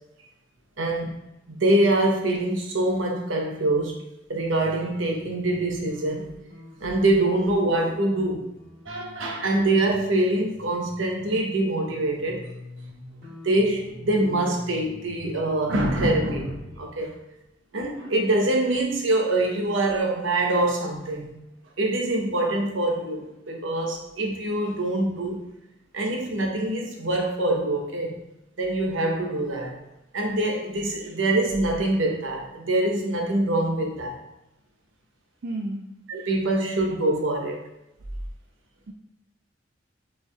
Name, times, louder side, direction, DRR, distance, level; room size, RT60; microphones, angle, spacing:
voice 1, 0.8-1.1 1.5-4.0 4.3-6.3 6.8-8.5 8.9-12.4 13.4-17.1 17.7-21.4 21.8-25.4 25.9-28.2 28.6-29.8 30.1-34.2 36.1-37.6, right 1 dB, 80° right, 1 dB, 0.9 m, -24 dB
sound 1, 4.6-5.2 5.5-10.6 10.9-16.8, left 1 dB, 20° left, 1.6 m, -45 dB
voice 2, 35.4-35.9 36.1-36.3 38.9-39.0, right 1 dB, 55° right, 0 dB, 0.4 m, -32 dB
6.7 x 3.3 x 2.3 m, 0.89 s
head